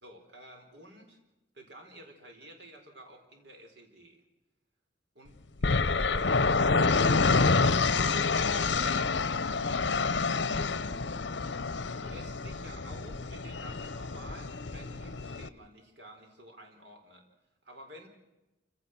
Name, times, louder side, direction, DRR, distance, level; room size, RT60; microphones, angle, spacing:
voice 1, 0.0-1.2 1.5-4.2 5.1-6.8 7.7-9.1 12.0-17.3 17.6-18.1, right 1 dB, 70° right, 3 dB, 4.5 m, -51 dB
sound 1, 5.6-15.5, left 4 dB, 80° left, 0.9 m, -28 dB
28.5 x 17.0 x 6.1 m, 0.99 s
head